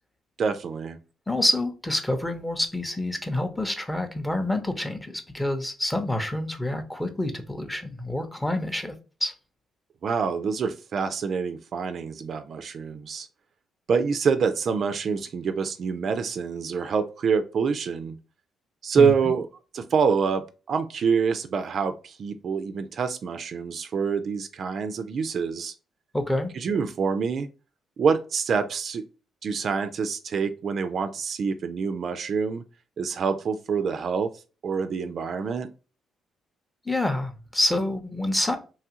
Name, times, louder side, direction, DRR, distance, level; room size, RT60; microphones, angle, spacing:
voice 1, 0.4-1.0 10.0-13.3 13.9-18.2 18.8-19.5 19.7-25.7 26.5-27.5 28.0-29.0 29.4-32.6 33.0-34.3 34.6-35.7, right 5 dB, 55° right, 0.3 m, -26 dB
voice 2, 1.3-8.9 9.2-9.3 19.0-19.3 26.1-26.5 36.9-38.6, left 1 dB, 10° left, 0.6 m, -27 dB
3.0 x 2.3 x 2.8 m
cardioid pair, 90°, 0 cm